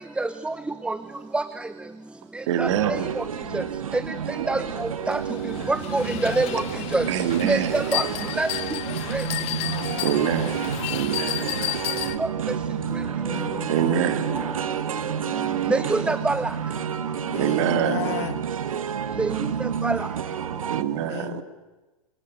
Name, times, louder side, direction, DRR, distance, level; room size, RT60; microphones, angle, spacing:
voice 1, 0.2-0.5 0.9-1.0 1.3-1.4 2.6-2.7 4.5-4.6 5.1-5.2 5.7-6.6 6.9-7.0 7.5-8.0 8.4-8.5 9.1-9.2 15.7-16.4 19.2-19.3 19.8-20.0, right 2 dB, 5° right, 13 dB, 0.8 m, -24 dB
voice 2, 2.5-3.2 4.2-4.9 7.1-8.4 9.0-9.1 9.6-11.9 13.7-14.9 16.0-16.1 17.3-18.3 19.8-19.9 20.3-21.4, right 10 dB, 55° right, 9 dB, 2.7 m, -27 dB
sound 1, 2.6-20.8, right 8 dB, 70° right, 1.4 m, -30 dB
sound 2, 4.9-12.2, left 18 dB, 35° left, 0.9 m, -32 dB
voice 3, 6.8-7.2 9.2-10.3 13.3-14.2 17.3-18.5 21.1-21.4, left 13 dB, 50° left, 11 dB, 2.1 m, -35 dB
28.5 x 25.0 x 6.9 m, 1.1 s
figure-of-eight pair, 100°, 18 cm